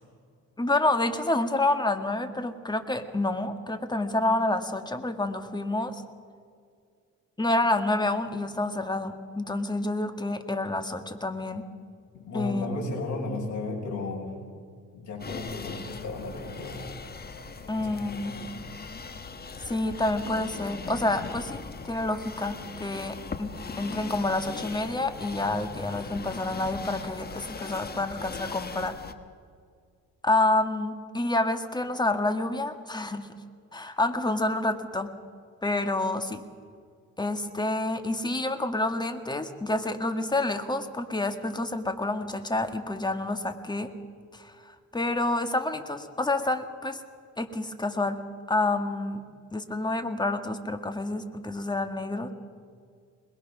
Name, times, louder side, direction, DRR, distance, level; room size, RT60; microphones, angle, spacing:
voice 1, 0.6-6.0 7.4-11.6 12.3-12.7 17.7-18.3 19.6-21.6 21.9-23.5 23.8-29.0 30.2-33.3 33.7-35.1 35.6-36.4 37.2-43.9 44.3-47.0 47.4-48.2 48.5-49.2 49.5-52.3, left 2 dB, 15° left, 7 dB, 1.6 m, -28 dB
voice 2, 12.1-14.3 14.9-16.8 17.8-18.4, left 3 dB, 65° left, -1 dB, 6.3 m, -35 dB
sound 1, 15.2-29.1, left 4 dB, 30° left, 1.3 m, -40 dB
22.0 x 20.0 x 6.0 m, 2.2 s
cardioid pair, 90°, 30 cm